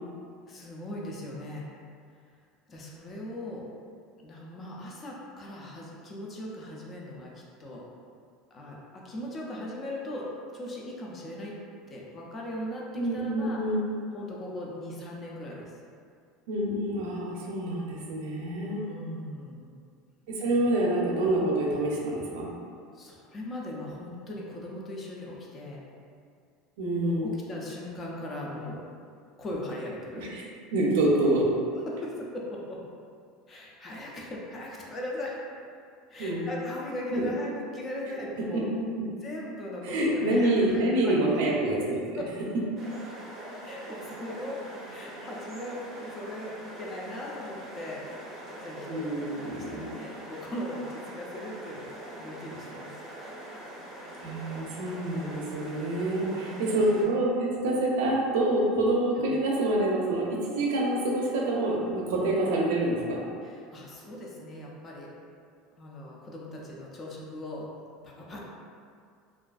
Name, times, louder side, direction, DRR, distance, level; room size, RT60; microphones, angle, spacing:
voice 1, 0.5-1.7 2.7-3.6 4.2-7.8 8.5-10.3 10.5-11.5 11.9-13.6 14.1-15.7 18.6-19.8 22.9-25.8 27.0-28.8 29.4-30.3 31.9-32.8 33.5-35.4 36.1-38.7 39.2-41.1 42.2-42.3 43.6-44.6 44.8-48.1 48.5-49.3 49.8-52.9 56.2-57.0 59.2-59.3 63.4-65.1 65.8-67.7 68.0-68.5, left 1 dB, 20° left, -3 dB, 0.3 m, -39 dB
voice 2, 12.9-13.9 16.5-18.8 20.3-22.5 26.8-27.4 30.2-30.5 30.7-31.5 36.2-36.5 37.1-37.2 38.5-38.6 39.8-42.2 48.9-49.9 54.2-63.2, right 1 dB, 90° right, -3 dB, 0.5 m, -27 dB
sound 1, 42.8-57.0, right 1 dB, 25° right, 0.6 m, -43 dB
2.4 x 2.3 x 2.3 m, 2.3 s
cardioid pair, 165°, 0 cm